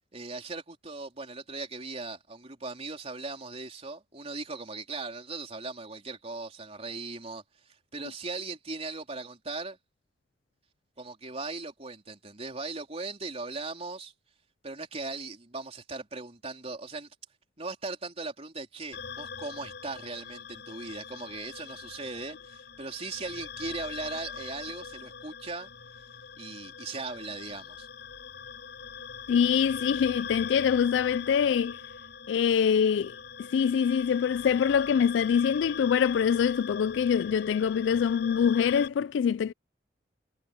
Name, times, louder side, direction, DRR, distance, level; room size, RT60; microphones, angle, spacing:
voice 1, 0.1-9.8 11.0-14.1 14.6-17.1 17.6-25.7 26.4-27.9, right 3 dB, 35° right, 3.8 m, -38 dB
sound 1, 18.9-38.9, left 6 dB, 65° left, 5.2 m, -42 dB
voice 2, 29.3-31.8 32.3-33.2 33.5-39.5, left 7 dB, 85° left, 0.3 m, -24 dB
head